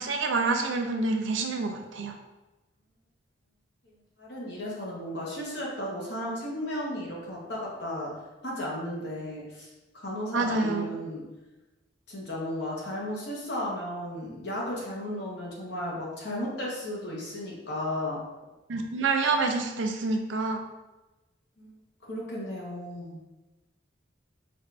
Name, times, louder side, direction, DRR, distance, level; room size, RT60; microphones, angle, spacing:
voice 1, 0.0-2.2 10.3-10.9 18.7-20.6, right 3 dB, 85° right, 4 dB, 0.5 m, -27 dB
voice 2, 4.2-8.1 8.4-9.7 9.9-11.2 12.1-18.2 21.6-21.8 22.1-23.2, left 1 dB, 60° left, -4 dB, 1.1 m, -34 dB
4.1 x 2.5 x 3.2 m, 1.1 s
head